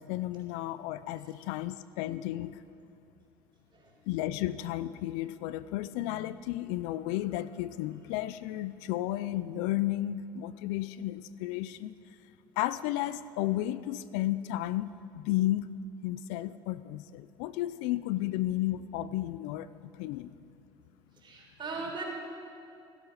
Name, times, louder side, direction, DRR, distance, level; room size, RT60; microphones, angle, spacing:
voice 1, 0.0-2.6 4.1-11.9 12.6-14.9 15.1-15.7 16.0-20.3, left 14 dB, 75° left, 16 dB, 0.5 m, -33 dB
voice 2, 21.2-22.0, right 4 dB, 40° right, -1 dB, 4.1 m, -38 dB
16.0 x 12.5 x 4.9 m, 2.5 s
supercardioid pair, 80°, 12 cm